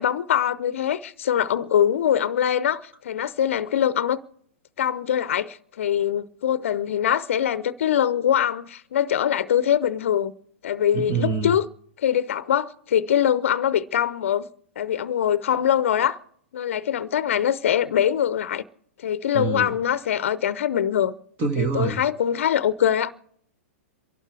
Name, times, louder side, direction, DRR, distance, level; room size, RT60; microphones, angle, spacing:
voice 1, 0.0-4.2 4.8-10.3 10.6-11.7 12.0-14.5 14.8-16.2 16.5-18.6 19.0-21.1 21.6-23.1, left 9 dB, 70° left, 0.6 m, -23 dB
voice 2, 10.9-11.5 19.3-19.7 21.4-22.0, right 5 dB, 30° right, 1.5 m, -25 dB
27.5 x 12.0 x 3.3 m
hypercardioid pair, 115°, 7 cm